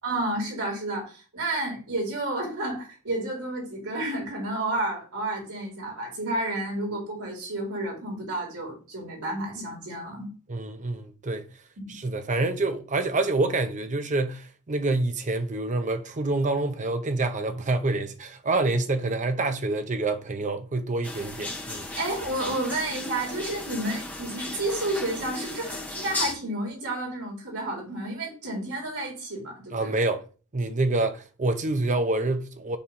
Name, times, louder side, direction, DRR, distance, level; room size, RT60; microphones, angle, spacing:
voice 1, 0.0-10.3 11.8-12.0 22.0-29.9, right 1 dB, 75° right, 3.8 m, -31 dB
voice 2, 10.5-11.5 11.9-21.9 29.7-30.2 30.5-32.8, right 2 dB, 35° right, 0.7 m, -27 dB
sound 1, 21.0-26.3, left 2 dB, 10° left, 1.1 m, -35 dB
6.9 x 3.1 x 5.5 m
head